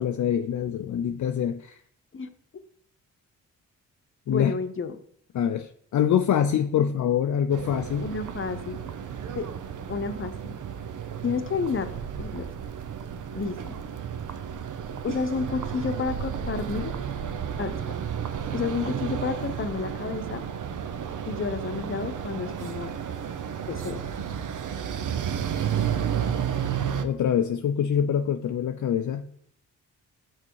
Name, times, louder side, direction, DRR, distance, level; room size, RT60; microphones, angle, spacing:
voice 1, 0.0-1.8 4.3-4.5 5.3-8.1 27.0-29.3, left 9 dB, 55° left, 7 dB, 0.5 m, -25 dB
voice 2, 4.3-5.0 8.0-8.9 9.3-9.5 9.9-10.6 11.2-11.9 12.2-12.5 13.3-13.8 15.0-16.9 17.6-17.8 18.5-20.4 21.2-22.9 23.7-24.0, left 5 dB, 35° left, 9 dB, 0.9 m, -30 dB
sound 1, 7.5-27.0, right 8 dB, 60° right, 0.8 m, -32 dB
6.0 x 4.4 x 4.7 m, 0.64 s
supercardioid pair, 50°, 35 cm